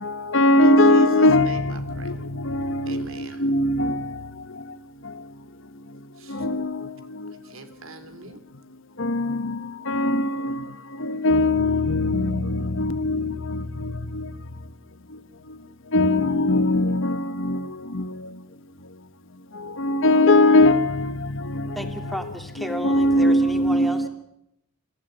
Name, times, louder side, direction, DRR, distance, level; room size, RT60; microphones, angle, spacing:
voice 1, 0.0-4.1 6.3-6.9 7.2-7.3 9.0-9.6 9.9-10.6 11.0-14.3 15.9-17.7 17.9-18.1 19.8-21.9 22.6-24.1, left 1 dB, 65° left, 1.2 m, -21 dB
voice 2, 0.6-2.1 2.8-3.4 6.1-6.5 7.4-8.4, right 3 dB, 75° right, 3.1 m, -43 dB
voice 3, 21.7-24.1, equal, ahead, 2.5 m, -33 dB
25.5 x 15.0 x 9.9 m
head